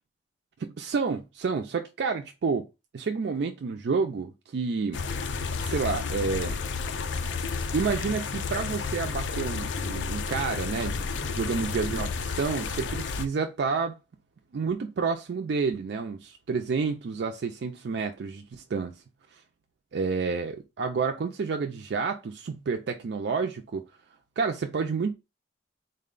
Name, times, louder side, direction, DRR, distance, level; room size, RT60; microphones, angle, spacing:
voice 1, 0.6-2.7 2.9-5.0 5.7-6.6 7.7-14.0 14.5-19.0 19.9-23.8 24.4-25.1, right 5 dB, 65° right, 0.4 m, -29 dB
sound 1, 4.9-13.3, left 4 dB, 80° left, 0.4 m, -31 dB
3.9 x 2.2 x 3.7 m
head